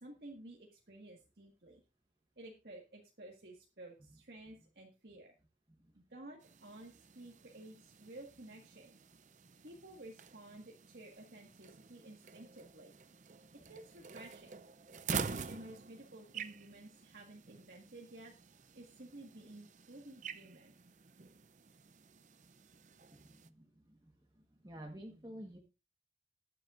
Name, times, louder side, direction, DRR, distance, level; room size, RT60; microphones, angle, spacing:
voice 1, 0.0-1.8 2.4-5.3 5.9-9.0 9.6-13.0 13.5-14.6 15.1-18.3 18.7-20.7, right 1 dB, 70° right, 0 dB, 1.7 m, -53 dB
sound 1, 6.4-23.5, right 5 dB, 45° right, 0.5 m, -47 dB
voice 2, 23.1-24.0 24.6-25.6, right 1 dB, 20° right, 1 dB, 1.3 m, -50 dB
20.0 x 7.7 x 2.5 m, 0.30 s
head